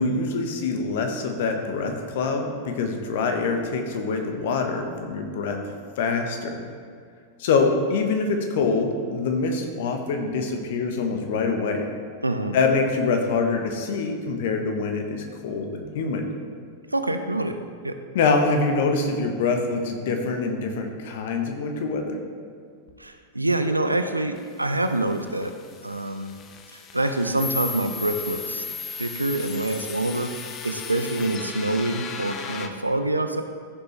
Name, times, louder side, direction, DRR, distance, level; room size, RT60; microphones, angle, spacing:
voice 1, 0.0-5.6 6.0-6.6 7.4-11.9 12.5-16.3 18.1-22.2, left 4 dB, 55° left, 4 dB, 1.2 m, -25 dB
voice 2, 12.2-12.6 16.9-17.6 17.8-18.0 23.0-25.5 25.8-26.3 26.7-28.6 29.0-30.3 30.6-33.4, right 2 dB, 85° right, 8 dB, 0.6 m, -26 dB
sound 1, 24.4-32.7, left 6 dB, 30° left, 0.8 m, -36 dB
14.5 x 6.9 x 3.3 m, 2.1 s
figure-of-eight pair, 90°, 0 cm